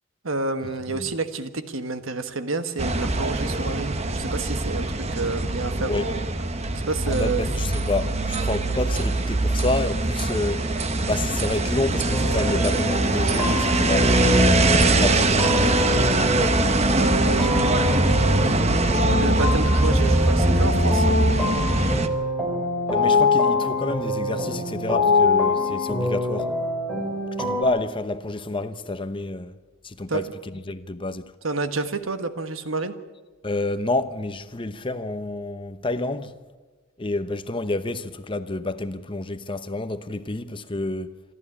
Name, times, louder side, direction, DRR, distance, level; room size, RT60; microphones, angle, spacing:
voice 1, 0.2-7.5 16.9-17.7 19.1-21.2 30.1-30.3 31.4-32.9, right 3 dB, 75° right, 1.4 m, -29 dB
sound 1, 2.8-22.1, right 2 dB, 30° right, 1.1 m, -22 dB
voice 2, 7.1-10.7 11.1-14.5 15.0-15.9 17.3-17.6 22.9-26.5 27.4-29.5 29.8-30.3 30.7-31.3 33.4-36.3 37.0-41.2, left 2 dB, 25° left, 0.9 m, -29 dB
sound 2, 12.1-27.6, left 3 dB, ahead, 4.0 m, -25 dB
26.0 x 13.0 x 8.6 m
head